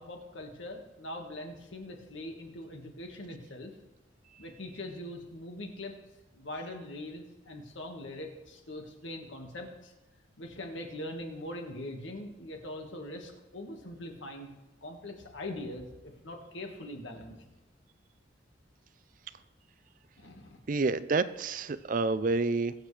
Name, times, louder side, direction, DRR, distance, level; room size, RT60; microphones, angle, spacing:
voice 1, 0.0-3.7 4.4-5.9 6.3-9.9 10.4-14.5 14.8-17.3 20.2-20.6, left 1 dB, 80° left, 3 dB, 1.7 m, -42 dB
voice 2, 20.7-22.7, right 3 dB, 45° right, 13 dB, 0.4 m, -28 dB
21.0 x 7.4 x 3.3 m, 1.1 s
head